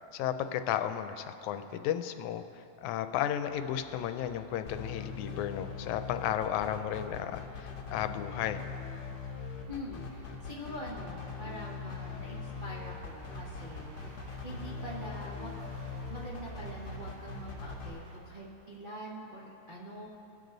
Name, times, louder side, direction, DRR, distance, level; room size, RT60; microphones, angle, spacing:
voice 1, 0.1-2.4 2.8-8.6, left 10 dB, 90° left, 9 dB, 2.0 m, -33 dB
sound 1, 3.4-18.2, right 3 dB, 40° right, 1.5 m, -49 dB
sound 2, 4.7-17.9, left 6 dB, 60° left, 1.2 m, -41 dB
voice 2, 9.7-14.2 14.4-15.5 16.1-20.1, equal, 70° right, -6 dB, 0.4 m, -44 dB
22.0 x 7.8 x 3.9 m, 2.9 s
omnidirectional pair, 3.3 m